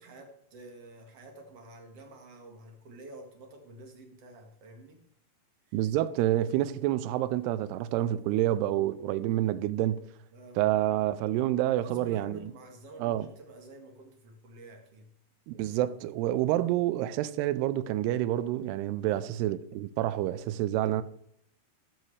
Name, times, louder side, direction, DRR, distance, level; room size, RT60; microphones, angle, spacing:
voice 1, 0.0-5.0 5.7-5.9 10.3-10.6 11.8-15.1 19.0-19.3, right 2 dB, 50° right, 1.9 m, -50 dB
voice 2, 5.7-10.0 10.6-12.4 13.0-13.3 15.5-21.0, right 13 dB, 85° right, 2.6 m, -28 dB
17.0 x 7.7 x 3.2 m
omnidirectional pair, 4.8 m